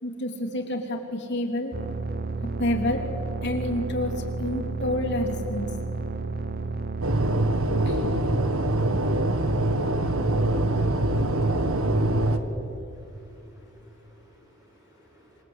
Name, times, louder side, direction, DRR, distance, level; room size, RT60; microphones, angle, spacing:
voice 1, 0.0-1.7 2.6-3.0 3.4-5.7 7.9-8.1, left 1 dB, 55° left, 3 dB, 3.5 m, -29 dB
sound 1, 1.7-7.3, right 3 dB, 45° right, 1.0 m, -31 dB
sound 2, 7.0-12.4, right 1 dB, 75° right, 1.7 m, -24 dB
voice 2, 12.9-15.4, equal, 15° right, -1 dB, 7.7 m, -58 dB
26.5 x 26.5 x 8.4 m, 2.9 s
head